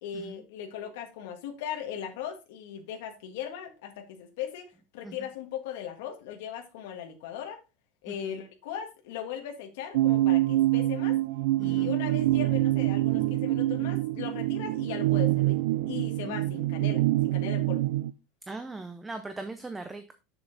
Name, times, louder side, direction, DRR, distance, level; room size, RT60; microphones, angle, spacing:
voice 1, 0.0-4.7 4.9-7.6 8.0-11.2 11.6-15.6 15.9-17.8, left 9 dB, 70° left, 1.5 m, -38 dB
voice 2, 8.1-8.4 11.6-12.0 16.2-16.5 18.5-20.1, right 3 dB, 5° right, 0.5 m, -40 dB
sound 1, 9.9-18.1, right 16 dB, 90° right, 0.4 m, -26 dB
6.9 x 6.9 x 3.9 m
cardioid pair, 180°, 0 cm